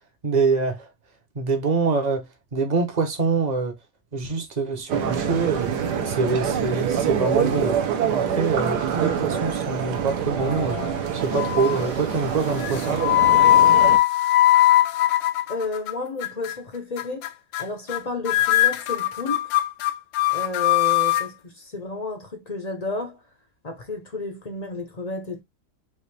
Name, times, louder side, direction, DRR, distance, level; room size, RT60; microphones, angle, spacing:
voice 1, 0.2-0.9 1.3-3.8 4.1-5.7 6.0-7.8 8.1-10.8 11.1-13.0, right 4 dB, 30° right, 0.8 m, -25 dB
sound 1, 4.9-14.0, right 7 dB, 65° right, 1.4 m, -25 dB
sound 2, 10.4-11.0 11.3-11.8 12.6-15.9 16.2-16.6 17.0-17.3 17.5-17.6 17.9-18.0 18.3-21.3, left 14 dB, 80° left, 1.3 m, -20 dB
voice 2, 15.5-17.3 17.6-19.5 20.3-23.2 23.6-25.4, left 3 dB, 35° left, 0.7 m, -32 dB
5.4 x 2.6 x 3.3 m
omnidirectional pair, 1.9 m